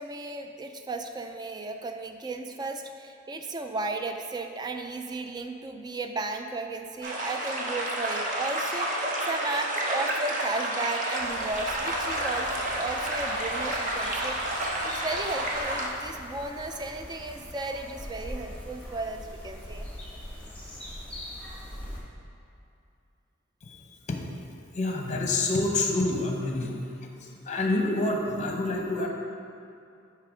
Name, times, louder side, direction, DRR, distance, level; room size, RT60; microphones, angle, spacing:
voice 1, 0.0-19.9, right 2 dB, 20° right, 5 dB, 0.4 m, -35 dB
sound 1, 7.0-15.9, right 1 dB, 40° right, 0.8 m, -30 dB
sound 2, 11.2-22.0, left 1 dB, 5° left, 1.3 m, -42 dB
voice 2, 23.6-24.2 24.7-29.1, left 2 dB, 35° left, 1 dB, 0.8 m, -28 dB
8.6 x 3.3 x 4.9 m, 2.6 s
head